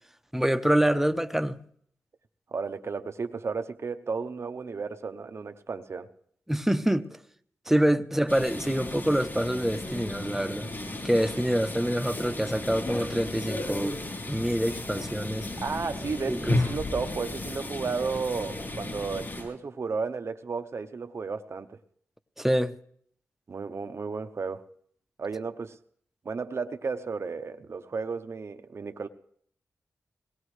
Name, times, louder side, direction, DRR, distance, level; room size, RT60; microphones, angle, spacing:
voice 1, 0.3-1.6 6.5-7.1 7.7-10.7 11.0-14.0 14.3-15.5 16.3-16.6 22.4-22.8, equal, 5° right, 0.8 m, -26 dB
voice 2, 2.5-6.1 15.6-21.8 23.5-24.6 25.2-25.8 26.2-29.1, right 4 dB, 55° right, 0.7 m, -33 dB
sound 1, 8.3-19.4, left 2 dB, 45° left, 7.6 m, -34 dB
21.5 x 18.0 x 3.2 m
cardioid pair, 55°, 5 cm